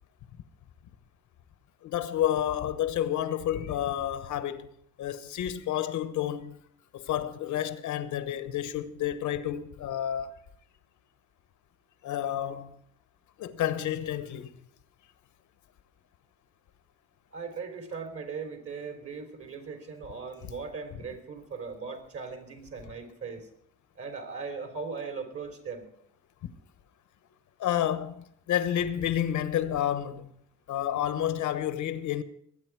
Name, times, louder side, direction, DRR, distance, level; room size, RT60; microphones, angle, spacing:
voice 1, 1.8-4.7 5.0-6.6 6.9-10.3 12.0-12.8 13.4-14.5 27.6-30.3 30.7-32.2, left 11 dB, 75° left, 1.1 m, -30 dB
voice 2, 17.3-23.5 23.9-25.9, right 5 dB, 50° right, 3.3 m, -39 dB
21.0 x 8.9 x 4.7 m
cardioid pair, 90°, 30 cm